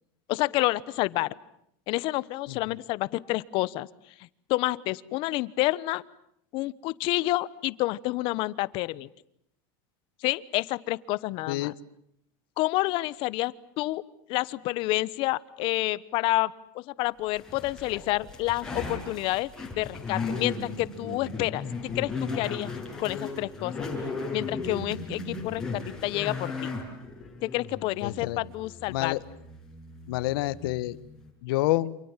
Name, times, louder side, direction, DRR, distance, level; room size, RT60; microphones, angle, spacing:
voice 1, 0.3-1.3 1.9-3.9 4.5-6.0 6.5-9.1 10.2-11.7 12.6-14.0 14.3-19.5 19.8-22.7 23.0-23.9 24.3-26.7 27.4-29.1, left 19 dB, 45° left, 18 dB, 1.0 m, -29 dB
sound 1, 17.4-31.3, left 3 dB, 5° left, 6.6 m, -36 dB
voice 2, 28.0-28.4 28.9-29.2 30.1-31.0 31.4-32.0, left 17 dB, 75° left, 17 dB, 1.3 m, -28 dB
28.5 x 28.0 x 7.4 m, 0.73 s
supercardioid pair, 165°, 12 cm